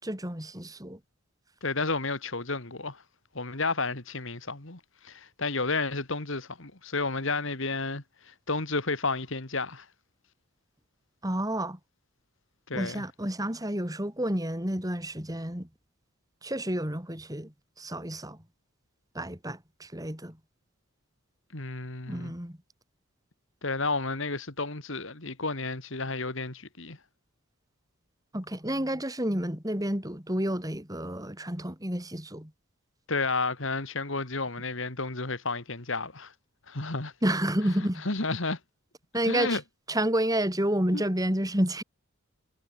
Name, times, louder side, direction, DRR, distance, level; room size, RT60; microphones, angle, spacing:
voice 1, 0.0-1.0 11.2-11.8 12.7-15.7 16.4-18.4 19.2-20.4 22.1-22.6 28.3-32.5 37.2-38.0 39.1-39.6 39.9-41.8, right 1 dB, 15° right, 3.7 m, -30 dB
voice 2, 1.6-3.0 3.3-9.9 12.7-13.0 21.5-22.3 23.6-27.0 33.1-36.3 36.7-37.1 37.6-38.6 39.3-39.6 40.9-41.0, left 3 dB, 60° left, 2.3 m, -32 dB
head